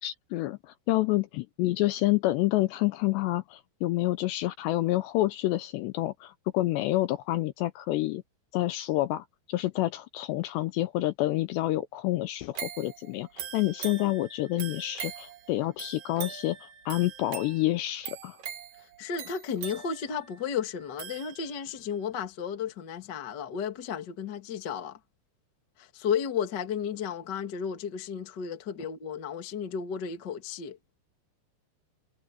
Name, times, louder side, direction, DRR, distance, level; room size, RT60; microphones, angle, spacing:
voice 1, 0.0-8.2 8.5-18.4, left 17 dB, 80° left, 2.6 m, -28 dB
sound 1, 12.6-21.8 22.3-22.4, right 9 dB, 55° right, 2.8 m, -42 dB
voice 2, 18.8-25.0 25.8-30.9, left 7 dB, 40° left, 1.5 m, -33 dB
omnidirectional pair, 5.4 m